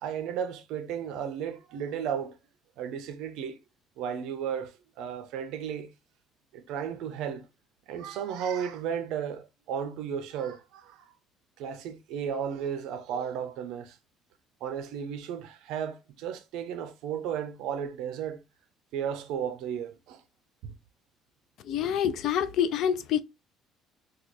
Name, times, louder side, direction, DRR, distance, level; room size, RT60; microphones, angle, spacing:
voice 1, 0.0-2.4 2.8-3.6 4.0-5.9 6.5-7.5 7.9-11.0 11.6-14.0 14.6-18.4 18.9-20.2 20.6-20.8, right 8 dB, 75° right, 0.5 m, -34 dB
voice 2, 21.6-23.2, left 9 dB, 55° left, 0.4 m, -26 dB
4.5 x 2.3 x 2.5 m
cardioid pair, 170°, 0 cm